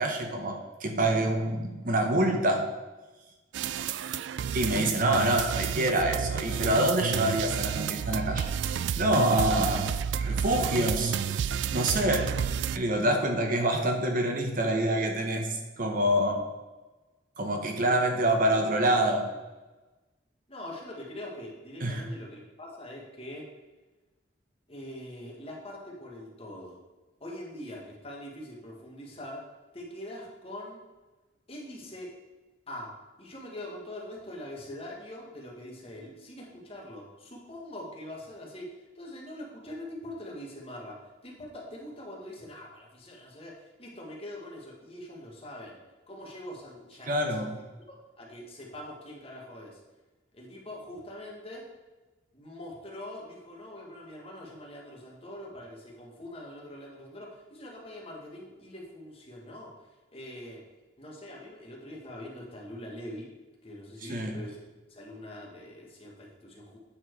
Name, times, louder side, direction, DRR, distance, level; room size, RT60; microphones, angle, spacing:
voice 1, 0.0-2.6 4.5-8.5 8.9-9.9 10.2-11.2 11.7-16.4 17.4-19.3 21.8-22.0 47.1-47.6 64.1-64.4, right 1 dB, 45° right, 3 dB, 0.9 m, -26 dB
sound 1, 3.5-12.8, right 7 dB, 75° right, 0.3 m, -31 dB
voice 2, 20.5-23.4 24.7-26.8 27.2-29.4 29.7-30.8 31.5-32.1 32.7-32.9 33.2-45.8 46.1-47.6 48.2-49.8 50.3-51.6 52.3-60.6 61.0-63.3 63.6-64.6 64.9-66.8, left 1 dB, 30° left, -2 dB, 1.7 m, -43 dB
8.7 x 4.5 x 4.7 m, 1.2 s
head